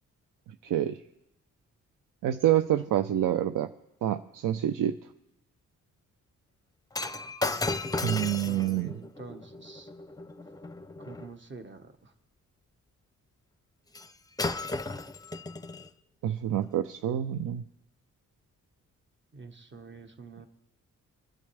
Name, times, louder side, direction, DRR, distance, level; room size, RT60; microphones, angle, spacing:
voice 1, 0.6-1.0 2.2-3.7 4.0-5.0 8.0-8.9 16.2-17.6, right 11 dB, 80° right, 10 dB, 0.6 m, -27 dB
Shatter, 6.9-11.3 13.9-14.1 14.4-15.9 16.6-16.8, left 2 dB, 10° left, 0.7 m, -35 dB
voice 2, 8.4-9.9 11.0-12.1 19.3-20.5, right 4 dB, 35° right, 7 dB, 1.5 m, -46 dB
26.0 x 10.5 x 3.4 m, 0.94 s
cardioid pair, 90°, 32 cm